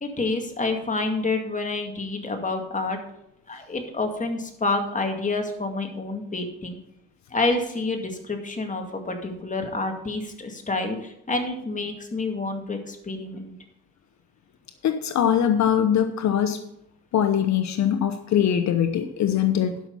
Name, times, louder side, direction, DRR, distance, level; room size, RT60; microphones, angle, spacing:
voice 1, 0.0-3.0 3.5-6.8 7.3-13.5, left 3 dB, 25° left, 4 dB, 2.2 m, -28 dB
voice 2, 14.8-16.6 17.1-19.8, left 9 dB, 65° left, 9 dB, 0.8 m, -22 dB
11.5 x 6.1 x 5.5 m, 0.81 s
cardioid pair, 90°, 30 cm